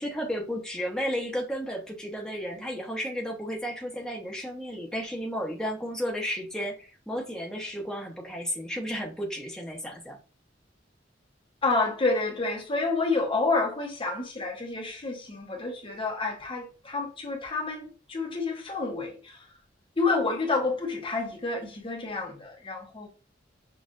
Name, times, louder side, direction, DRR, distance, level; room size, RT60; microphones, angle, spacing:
voice 1, 0.0-10.2, equal, 5° left, 0.8 m, -33 dB
voice 2, 11.6-19.5 20.0-23.1, left 3 dB, 30° left, 0.8 m, -29 dB
6.2 x 2.4 x 2.5 m
head